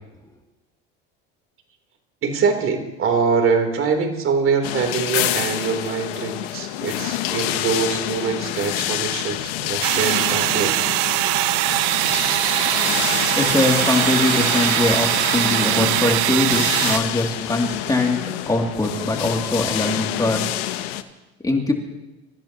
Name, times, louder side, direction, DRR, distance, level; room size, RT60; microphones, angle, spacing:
voice 1, 2.2-10.8, right 5 dB, 45° right, 4 dB, 3.6 m, -23 dB
sound 1, 4.6-21.0, left 13 dB, 75° left, 1.1 m, -27 dB
sound 2, 9.8-17.0, right 16 dB, 70° right, 0.8 m, -21 dB
voice 2, 13.4-18.2 18.5-20.4 21.4-21.7, left 2 dB, 10° left, 1 dB, 2.7 m, -22 dB
27.5 x 15.0 x 3.0 m, 1.0 s
supercardioid pair, 90°, 31 cm